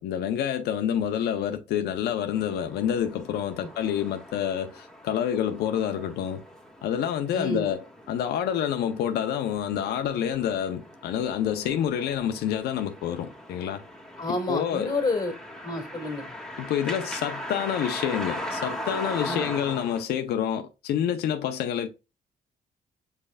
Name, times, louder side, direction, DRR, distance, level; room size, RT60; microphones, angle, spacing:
voice 1, 0.0-6.4 6.8-13.8 14.3-14.9 16.6-21.9, left 9 dB, 85° left, 0.6 m, -28 dB
sound 1, 2.3-20.0, equal, 5° left, 1.7 m, -40 dB
voice 2, 7.3-7.7 14.2-15.4 15.6-16.2 19.3-19.5, left 2 dB, 25° left, 1.9 m, -29 dB
5.3 x 4.5 x 2.2 m
cardioid pair, 95°, 16 cm